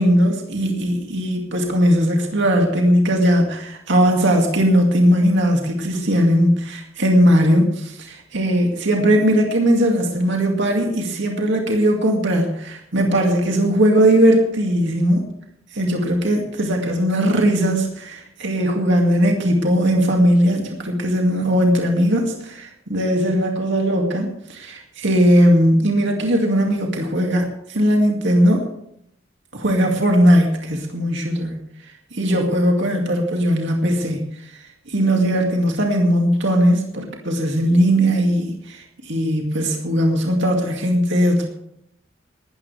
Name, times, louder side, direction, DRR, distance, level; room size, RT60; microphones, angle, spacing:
voice 1, 0.0-15.3 15.7-28.7 29.5-31.6 32.1-34.2 34.9-41.4, equal, 60° right, 1 dB, 2.3 m, -18 dB
19.0 x 13.5 x 3.4 m, 0.74 s
head